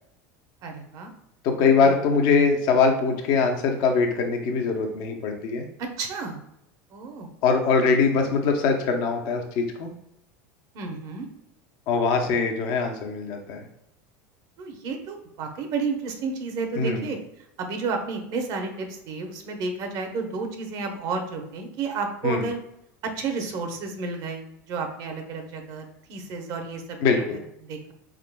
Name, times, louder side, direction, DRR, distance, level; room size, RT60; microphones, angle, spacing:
voice 1, 0.6-1.1 1.8-1.9 5.8-6.4 6.9-7.3 10.7-11.3 14.6-17.2 17.6-22.6 23.0-27.0 27.3-27.9, right 4 dB, 55° right, 4 dB, 0.8 m, -31 dB
voice 2, 1.4-5.6 7.4-9.9 11.9-13.6 16.8-17.0 22.2-22.4 27.0-27.4, left 5 dB, 60° left, 3 dB, 0.7 m, -22 dB
4.3 x 3.7 x 2.2 m, 0.79 s
supercardioid pair, 100°, 8 cm